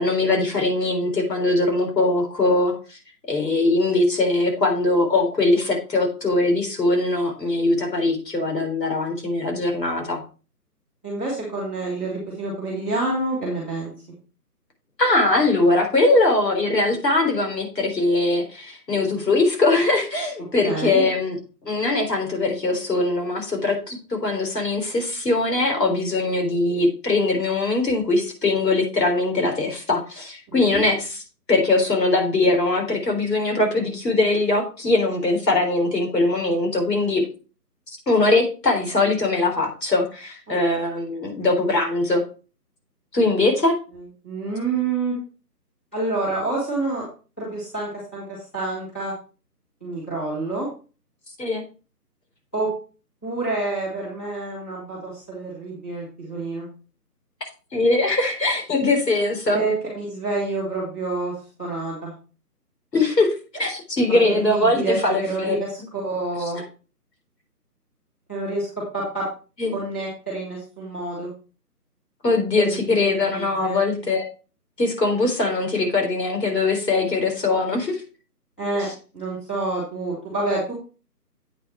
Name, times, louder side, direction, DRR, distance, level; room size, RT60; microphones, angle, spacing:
voice 1, 0.0-3.0 3.3-10.2 15.0-21.4 21.6-31.2 31.5-37.2 38.1-42.2 43.1-43.7 51.4-51.6 57.7-59.6 62.9-65.6 69.6-69.7 72.2-74.2 74.8-78.0, left 2 dB, 85° left, 2 dB, 3.8 m, -21 dB
voice 2, 11.0-13.9 20.6-21.0 30.5-30.8 44.2-45.1 45.9-47.0 47.4-49.1 49.8-50.7 52.5-52.7 53.2-56.7 59.5-62.1 64.1-66.6 68.3-69.3 69.7-71.3 72.6-72.8 73.1-73.8 78.6-78.9 79.1-80.7, right 2 dB, 5° left, -10 dB, 1.4 m, -28 dB
8.4 x 5.9 x 4.4 m, 0.35 s
hypercardioid pair, 175°, 48 cm